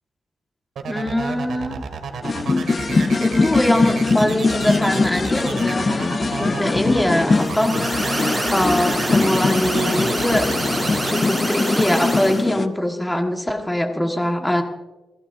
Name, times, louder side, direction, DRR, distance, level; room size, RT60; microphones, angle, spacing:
voice 1, 0.8-1.8 3.2-6.0 6.4-7.8 8.5-10.5 11.1-14.6, left 1 dB, 5° left, 3 dB, 1.5 m, -22 dB
sound 1, 0.8-11.2, right 5 dB, 70° right, 2.1 m, -31 dB
sound 2, 2.2-12.7, left 3 dB, 30° left, 0.6 m, -22 dB
sound 3, 7.3-12.4, right 1 dB, 10° right, 6.1 m, -26 dB
28.0 x 15.5 x 2.7 m, 1.2 s
wide cardioid pair, 155°, 0 cm